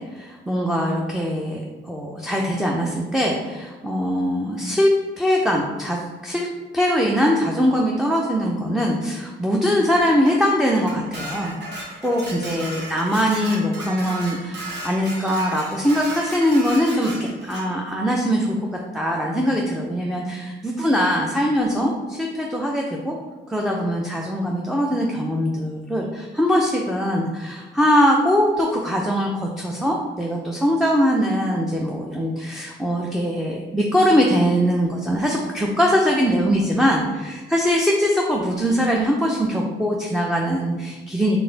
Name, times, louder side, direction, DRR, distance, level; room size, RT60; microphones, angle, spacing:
voice 1, 0.0-4.9 5.2-6.5 6.7-18.7 18.9-23.1 23.5-41.4, equal, ahead, -2 dB, 0.6 m, -22 dB
Dishes pots and pans, 10.0-17.7, right 1 dB, 60° right, 1.3 m, -35 dB
3.9 x 3.4 x 3.9 m, 1.3 s
cardioid pair, 90°, 20 cm